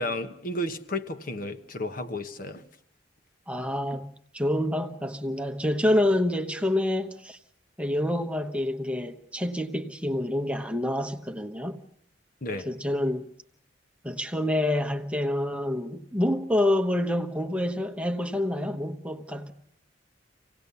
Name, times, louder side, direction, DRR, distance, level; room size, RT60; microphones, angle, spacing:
voice 1, 0.0-2.6 12.4-12.7, left 1 dB, 50° left, 1.2 m, -32 dB
voice 2, 3.5-7.4 7.8-11.8 12.7-13.3 14.0-19.5, left 1 dB, 5° right, 1.0 m, -27 dB
26.0 x 18.0 x 6.9 m
head